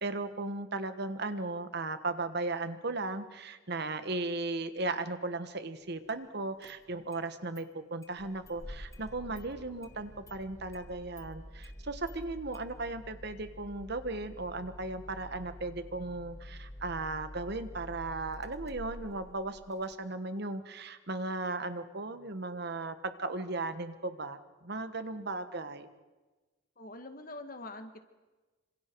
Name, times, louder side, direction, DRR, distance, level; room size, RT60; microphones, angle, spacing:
voice 1, 0.0-25.9, right 2 dB, 55° right, 10 dB, 1.3 m, -36 dB
Engine starting, 6.1-6.2 6.6-7.2 7.6-7.7 8.0-19.9, left 1 dB, 15° left, 1.3 m, -48 dB
voice 2, 26.8-28.0, left 2 dB, 45° left, 7 dB, 1.8 m, -44 dB
27.0 x 26.0 x 4.7 m, 1.2 s
head